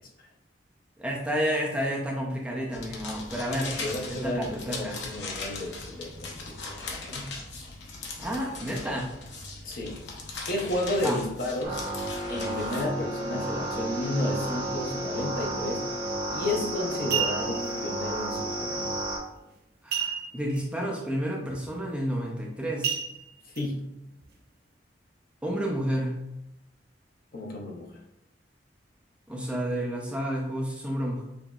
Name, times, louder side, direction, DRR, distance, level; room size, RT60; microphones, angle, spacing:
voice 1, 1.0-3.8 4.1-5.0 8.2-9.1 11.0-11.2 19.8-23.0 25.4-26.2 29.3-31.2, equal, 5° right, -2 dB, 0.5 m, -30 dB
sound 1, 2.7-12.8, left 3 dB, 85° left, 0.8 m, -39 dB
voice 2, 3.7-7.3 9.6-10.0 10.5-11.9 12.3-15.9 16.3-18.9 23.5-23.8 27.3-27.9, left 1 dB, 55° left, 0 dB, 0.8 m, -32 dB
sound 2, 11.6-19.2, right 1 dB, 25° right, 1.4 m, -32 dB
sound 3, 16.2-16.5 16.9-17.7 19.9-20.6 20.9-21.0 21.5-21.7 22.8-23.6 24.2-24.3, right 8 dB, 60° right, 0.6 m, -31 dB
5.8 x 2.6 x 2.3 m, 0.88 s
head